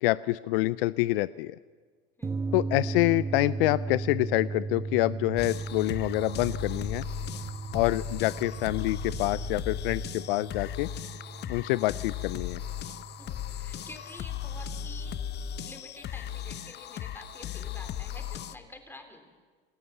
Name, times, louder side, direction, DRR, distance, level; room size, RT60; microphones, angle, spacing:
voice 1, 0.0-1.6 2.5-7.0 7.7-10.9 11.5-12.6, left 19 dB, 70° left, 18 dB, 0.5 m, -27 dB
sound 1, 2.2-15.1, right 3 dB, 10° right, 0.6 m, -37 dB
sound 2, 5.4-18.6, left 9 dB, 35° left, 0.8 m, -37 dB
sound 3, 5.4-10.7, right 11 dB, 55° right, 3.7 m, -46 dB
voice 2, 13.2-15.2 15.6-19.4, left 2 dB, 5° left, 5 dB, 3.4 m, -49 dB
27.5 x 14.5 x 7.1 m, 1.5 s
hypercardioid pair, 95°, 29 cm